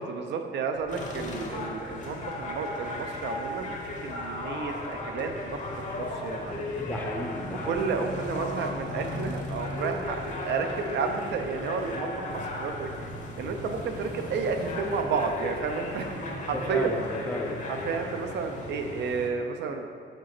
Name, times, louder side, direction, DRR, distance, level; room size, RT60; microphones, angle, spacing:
voice 1, 0.0-3.7 4.0-6.7 7.5-13.1 13.4-16.1 16.5-16.9 17.2-17.3 17.7-19.9, right 5 dB, 80° right, 5 dB, 0.6 m, -32 dB
sound 1, 0.7-16.2, left 2 dB, 85° left, 0.8 m, -52 dB
sound 2, 0.9-19.3, left 2 dB, 45° left, 0.8 m, -35 dB
voice 2, 6.8-8.2 16.5-17.6, left 1 dB, 10° left, 2 dB, 0.6 m, -34 dB
5.2 x 4.1 x 6.0 m, 2.1 s
cardioid pair, 145°, 18 cm